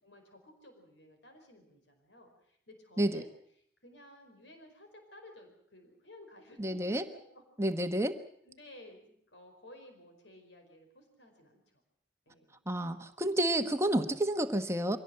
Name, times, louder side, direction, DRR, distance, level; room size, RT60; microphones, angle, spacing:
voice 1, 0.0-3.3 3.8-7.4 7.8-7.9 8.4-11.6 12.3-12.6 14.1-14.2, left 1 dB, 80° left, 5 dB, 4.9 m, -55 dB
voice 2, 6.6-7.1 7.6-8.2 12.7-15.0, right 1 dB, 15° right, 7 dB, 1.2 m, -30 dB
24.0 x 17.0 x 7.8 m, 0.66 s
head